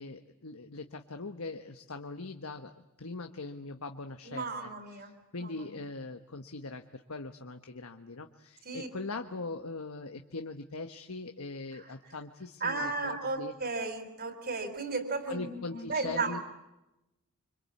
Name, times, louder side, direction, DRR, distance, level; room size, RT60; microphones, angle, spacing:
voice 1, 0.0-4.7 5.3-13.5 15.3-16.4, left 3 dB, 75° left, 6 dB, 1.3 m, -41 dB
voice 2, 4.2-5.1 5.4-5.9 8.6-8.9 11.7-11.9 12.6-16.4, right 3 dB, 45° right, 9 dB, 4.1 m, -35 dB
26.0 x 26.0 x 8.5 m, 0.93 s
head